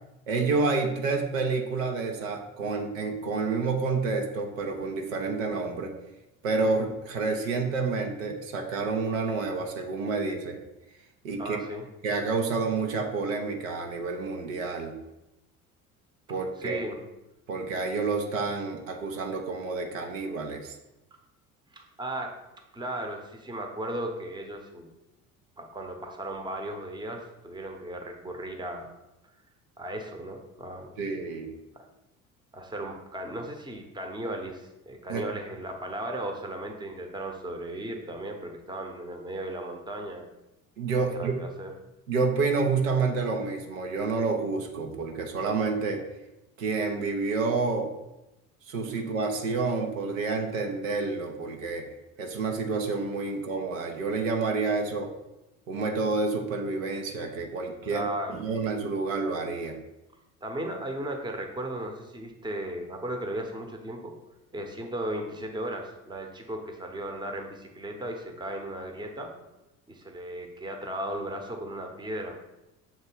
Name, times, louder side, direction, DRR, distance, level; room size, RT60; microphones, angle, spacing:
voice 1, 0.3-5.9 6.4-10.6 11.2-11.6 12.0-15.0 16.3-16.8 17.5-20.8 31.0-31.5 35.1-35.2 40.8-41.4 42.1-46.0 46.6-47.9 48.7-51.9 52.2-55.1 55.7-58.0 58.3-59.8, right 4 dB, 70° right, 3 dB, 0.8 m, -29 dB
voice 2, 11.4-11.8 16.6-17.0 21.7-22.4 22.7-24.9 25.6-28.9 29.8-31.0 31.8-31.9 32.5-40.3 41.0-41.7 57.8-58.4 60.4-64.1 64.5-69.4 69.9-72.4, right 1 dB, 10° right, 3 dB, 0.9 m, -36 dB
7.0 x 3.1 x 4.5 m, 0.94 s
figure-of-eight pair, 60°, 42 cm